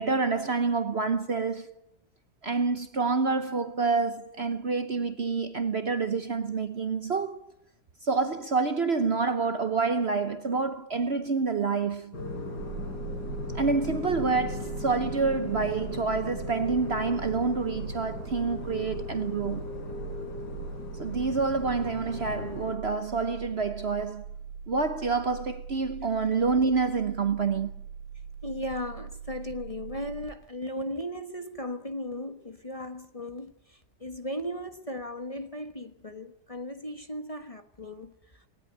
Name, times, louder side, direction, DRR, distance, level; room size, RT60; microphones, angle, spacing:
voice 1, 0.0-1.8 2.4-7.5 8.0-12.2 13.5-19.7 21.0-24.2 24.7-27.7, right 4 dB, 45° right, 1.1 m, -28 dB
sound 1, 12.1-22.8, left 2 dB, 85° left, 4.3 m, -38 dB
sound 2, 12.6-30.3, right 5 dB, 80° right, 1.9 m, -41 dB
voice 2, 28.4-38.4, left 1 dB, 25° left, 1.3 m, -37 dB
19.0 x 18.5 x 9.4 m
omnidirectional pair, 1.8 m